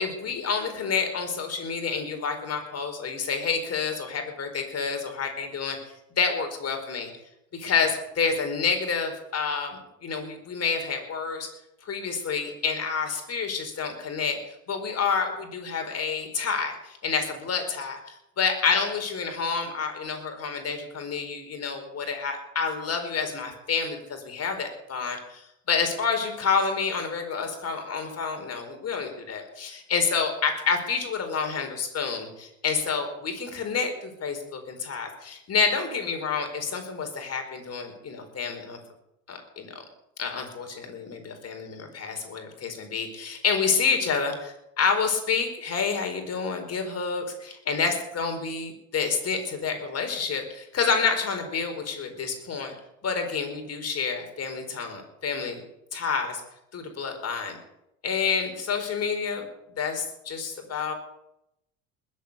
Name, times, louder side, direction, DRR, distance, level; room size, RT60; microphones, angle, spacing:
voice 1, 0.0-5.8 6.2-7.1 7.6-11.5 11.8-14.4 14.7-25.4 25.7-38.8 39.3-39.8 40.2-52.7 53.0-55.6 55.9-56.4 56.7-57.6 58.0-59.4 59.8-60.9, left 5 dB, 35° left, 5 dB, 4.6 m, -28 dB
20.5 x 8.1 x 8.4 m, 0.85 s
hypercardioid pair, 70°, 42 cm